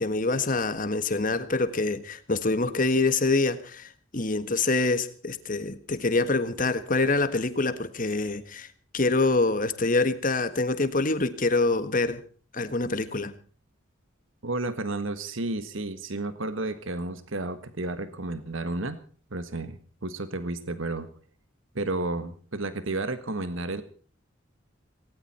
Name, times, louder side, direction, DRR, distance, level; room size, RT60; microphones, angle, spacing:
voice 1, 0.0-8.7 8.9-12.2 12.5-13.3, left 3 dB, 40° left, 12 dB, 1.6 m, -25 dB
voice 2, 14.4-19.0 19.3-21.1 21.7-23.8, right 2 dB, 75° right, 12 dB, 1.6 m, -32 dB
18.5 x 18.0 x 4.4 m, 0.41 s
head